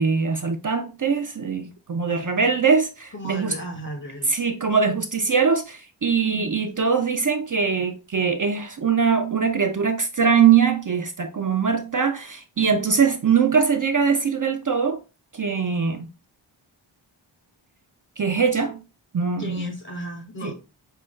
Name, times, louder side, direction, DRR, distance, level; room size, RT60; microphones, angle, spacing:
voice 1, 0.0-3.5 4.3-15.0 15.3-16.1 18.2-18.8 19.1-19.7 20.4-20.5, right 6 dB, 40° right, 0.5 m, -22 dB
voice 2, 2.1-2.5 3.1-4.4 6.2-6.7 19.4-20.5, right 1 dB, 40° left, 1.0 m, -36 dB
5.6 x 2.3 x 3.1 m
wide cardioid pair, 60°, 49 cm